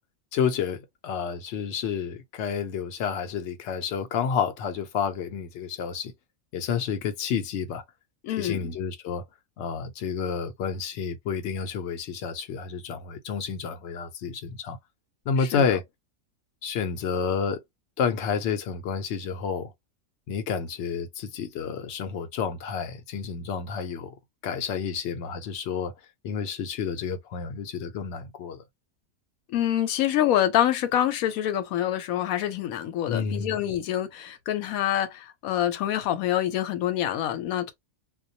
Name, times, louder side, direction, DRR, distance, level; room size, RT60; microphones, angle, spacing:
voice 1, 0.3-6.1 6.5-7.8 8.4-9.2 9.6-14.8 15.3-15.8 16.6-17.6 18.0-19.7 20.3-24.1 24.4-25.9 26.2-28.6 33.1-33.6, left 6 dB, 65° left, 0.8 m, -30 dB
voice 2, 8.2-8.8 15.4-15.8 29.5-37.7, left 11 dB, 90° left, 1.0 m, -26 dB
2.3 x 2.2 x 2.6 m
omnidirectional pair, 1.4 m